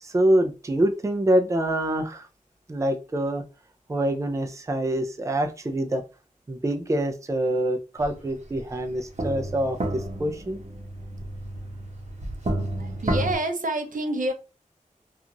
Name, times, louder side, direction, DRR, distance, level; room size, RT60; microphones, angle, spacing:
voice 1, 0.0-2.3 2.7-3.4 3.9-6.0 6.5-10.6, right 1 dB, 20° right, 5 dB, 0.4 m, -25 dB
sound 1, 8.0-8.1 8.5-13.4, right 1 dB, 55° right, 0.9 m, -31 dB
voice 2, 12.8-14.3, right 1 dB, 75° right, 6 dB, 0.5 m, -28 dB
2.5 x 2.3 x 2.8 m, 0.31 s
wide cardioid pair, 70°, 14 cm